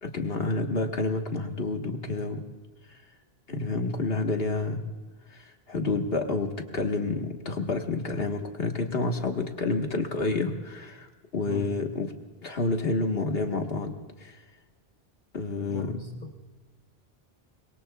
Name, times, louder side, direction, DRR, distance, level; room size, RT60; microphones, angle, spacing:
voice 1, 0.0-2.4 3.5-4.9 5.3-11.1 11.3-12.1 12.4-13.9 14.2-14.3 15.3-15.9, left 3 dB, 70° left, 3 dB, 1.8 m, -29 dB
voice 2, 15.7-16.4, left 3 dB, 50° left, 2 dB, 1.2 m, -38 dB
26.5 x 22.0 x 2.4 m, 1.3 s
omnidirectional pair, 1.0 m